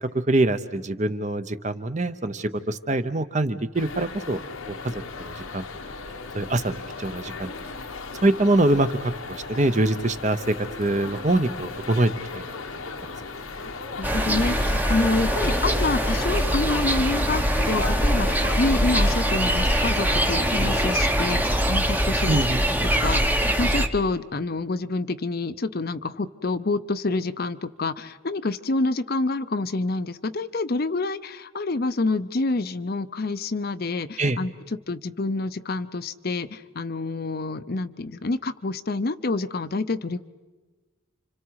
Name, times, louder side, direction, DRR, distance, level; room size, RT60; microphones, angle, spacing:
voice 1, 0.0-4.4 4.8-5.6 6.3-7.5 8.2-8.9 9.3-12.4 13.0-13.1 22.3-22.6 34.2-34.4, right 2 dB, 35° right, 11 dB, 0.8 m, -24 dB
sound 1, 3.7-21.0, left 4 dB, 90° left, 1.3 m, -36 dB
voice 2, 14.0-22.4 22.8-34.5 34.9-40.2, left 3 dB, 45° left, 12 dB, 0.6 m, -27 dB
sound 2, 14.0-23.9, equal, 10° right, 0.9 m, -23 dB
30.0 x 26.0 x 4.8 m, 1.3 s
head